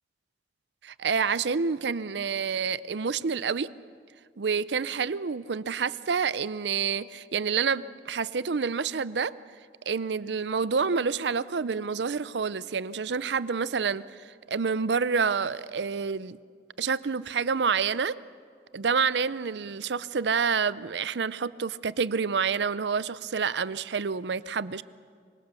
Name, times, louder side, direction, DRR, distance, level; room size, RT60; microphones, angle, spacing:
voice 1, 0.8-3.7 4.4-9.3 9.9-16.4 16.8-18.2 18.7-24.8, right 5 dB, 85° right, 18 dB, 0.6 m, -28 dB
25.5 x 24.0 x 6.9 m, 2.1 s
head